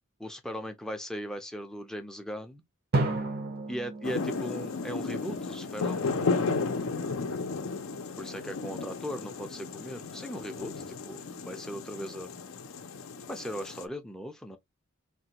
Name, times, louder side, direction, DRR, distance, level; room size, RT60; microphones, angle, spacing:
voice 1, 0.2-2.6 3.7-6.2 8.2-12.3 13.3-14.6, equal, 5° left, 0.5 m, -38 dB
Drum, 2.9-5.6, right 2 dB, 45° right, 0.6 m, -33 dB
sound 1, 4.0-13.9, left 4 dB, 60° left, 0.5 m, -34 dB
3.3 x 2.2 x 2.8 m
head